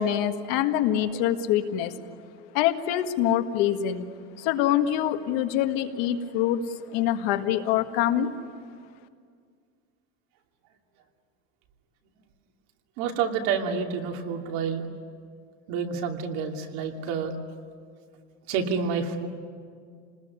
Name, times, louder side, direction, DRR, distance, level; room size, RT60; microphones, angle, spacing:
voice 1, 0.0-1.9 2.5-4.1 4.4-8.3, left 11 dB, 70° left, 7 dB, 1.8 m, -25 dB
voice 2, 13.0-14.9 15.7-17.4 18.5-19.3, right 6 dB, 70° right, 2 dB, 2.8 m, -28 dB
28.5 x 20.0 x 9.7 m, 2.1 s
cardioid pair, 160°, 30 cm